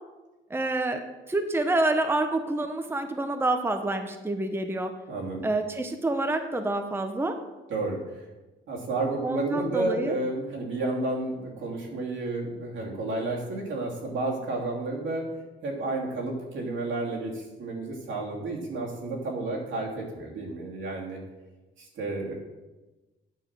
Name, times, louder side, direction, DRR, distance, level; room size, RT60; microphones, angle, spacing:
voice 1, 0.5-1.0 1.3-4.9 5.4-7.4 9.2-10.2, right 2 dB, 10° right, 6 dB, 0.8 m, -27 dB
voice 2, 5.1-5.5 7.7-8.3 8.7-15.3 15.6-21.2 21.8-22.3, right 2 dB, 75° right, -2 dB, 2.9 m, -31 dB
9.2 x 5.8 x 6.1 m, 1.1 s
cardioid pair, 90°, 20 cm